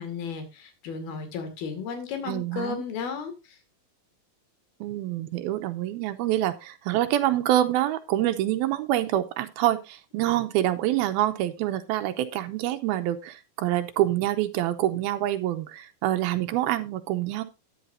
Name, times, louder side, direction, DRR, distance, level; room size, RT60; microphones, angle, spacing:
voice 1, 0.0-3.6, left 5 dB, 70° left, 7 dB, 4.1 m, -34 dB
voice 2, 2.3-2.8 4.8-17.4, right 13 dB, 80° right, 9 dB, 2.6 m, -26 dB
13.0 x 10.5 x 2.7 m, 0.26 s
omnidirectional pair, 4.5 m